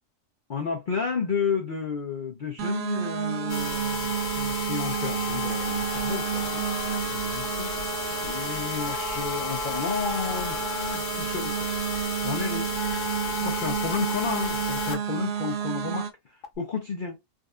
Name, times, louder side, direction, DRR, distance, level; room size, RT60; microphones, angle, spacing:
voice 1, 0.5-6.6 6.9-11.7 12.2-12.7 13.4-16.1 16.6-17.2, left 5 dB, 80° left, 0.4 m, -32 dB
sound 1, 2.6-16.1, right 8 dB, 80° right, 1.4 m, -31 dB
sound 2, 3.5-15.0 15.4-15.5 15.9-16.0 16.4-16.5, left 3 dB, 60° left, 1.0 m, -32 dB
3.7 x 2.4 x 2.4 m
omnidirectional pair, 1.7 m